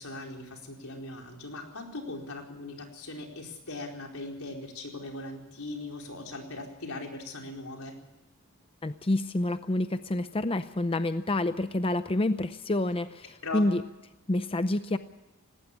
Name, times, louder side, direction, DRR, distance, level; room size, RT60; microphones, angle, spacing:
voice 1, 0.0-8.0 13.4-13.7, left 2 dB, 85° left, 1 dB, 4.4 m, -39 dB
voice 2, 8.8-13.8 14.3-15.0, left 1 dB, 25° left, 11 dB, 0.6 m, -28 dB
19.0 x 17.5 x 8.5 m, 0.98 s
head